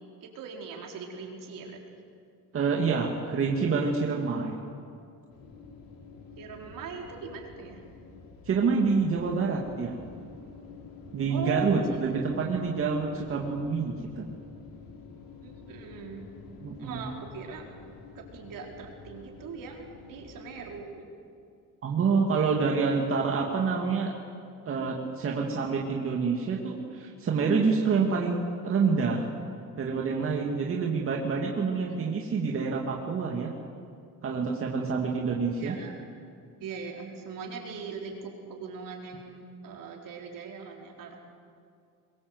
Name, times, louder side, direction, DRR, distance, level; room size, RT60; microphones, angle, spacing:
voice 1, 0.2-1.8 6.4-7.8 11.3-12.2 15.4-16.3 16.8-17.7 18.1-21.1 31.9-32.0 35.6-36.0 36.6-41.2, right 5 dB, 70° right, 1 dB, 4.3 m, -40 dB
voice 2, 2.5-4.6 8.5-10.0 11.1-14.3 16.6-17.0 21.8-24.1 24.7-29.3 29.8-33.5 34.2-35.8, right 5 dB, 40° right, 0 dB, 2.2 m, -27 dB
sound 1, 5.3-20.8, left 4 dB, 90° left, 3.8 m, -49 dB
23.0 x 22.0 x 8.0 m, 2.4 s
cardioid pair, 160°, 34 cm